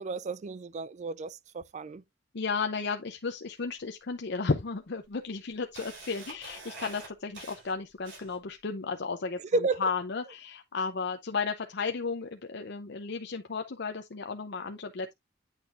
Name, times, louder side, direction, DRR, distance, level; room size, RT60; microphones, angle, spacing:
voice 1, 0.0-2.0 9.5-9.9, right 3 dB, 35° right, 0.3 m, -32 dB
voice 2, 2.3-9.4 9.8-15.1, left 4 dB, 60° left, 0.6 m, -33 dB
Camera, 3.6-3.7 4.5-4.6 5.1-8.6, right 3 dB, 65° right, 4.6 m, -46 dB
8.9 x 6.1 x 2.5 m
head